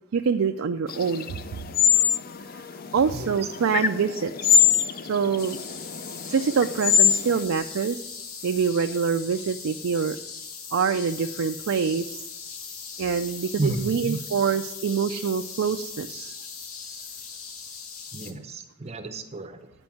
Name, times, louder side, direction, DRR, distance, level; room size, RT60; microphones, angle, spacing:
voice 1, 0.1-1.4 2.9-4.7 5.0-5.6 6.3-8.1 8.4-10.2 10.7-12.2 13.0-16.3, right 6 dB, 70° right, 6 dB, 0.4 m, -25 dB
sound 1, 0.9-7.4, left 8 dB, 45° left, 0.4 m, -24 dB
sound 2, 5.4-18.3, left 6 dB, 90° left, 1.0 m, -39 dB
voice 2, 13.6-14.2 18.1-19.7, right 2 dB, 30° right, 8 dB, 0.6 m, -31 dB
9.1 x 5.3 x 7.0 m, 0.88 s
head